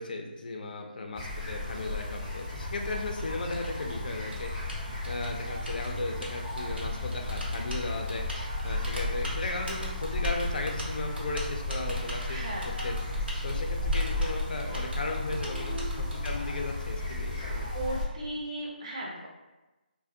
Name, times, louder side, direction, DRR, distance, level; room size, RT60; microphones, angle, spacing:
voice 1, 0.0-4.5 5.0-8.2 8.6-12.4 12.8-13.0 13.4-17.7, left 2 dB, 55° left, 3 dB, 0.4 m, -36 dB
sound 1, 1.1-18.0, left 2 dB, 10° left, 0.6 m, -34 dB
Typing, 1.7-16.3, right 1 dB, 85° right, 0.8 m, -43 dB
voice 2, 12.3-12.8 15.5-16.0 17.6-19.3, right 1 dB, 40° right, -3 dB, 0.6 m, -38 dB
2.4 x 2.1 x 2.6 m, 1.1 s
figure-of-eight pair, 160°, 6 cm